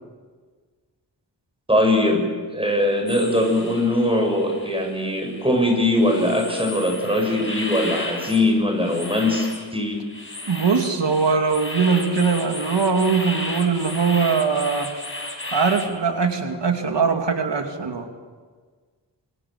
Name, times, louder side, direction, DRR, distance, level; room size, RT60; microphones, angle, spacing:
voice 1, 1.7-2.3 2.5-10.0, left 1 dB, 15° right, 3 dB, 7.5 m, -21 dB
sound 1, 3.1-15.9, left 1 dB, 30° left, 5.1 m, -34 dB
voice 2, 10.5-14.9 15.5-18.1, right 5 dB, 80° right, 4 dB, 2.7 m, -21 dB
26.5 x 26.5 x 7.7 m, 1.5 s
wide cardioid pair, 85°, 42 cm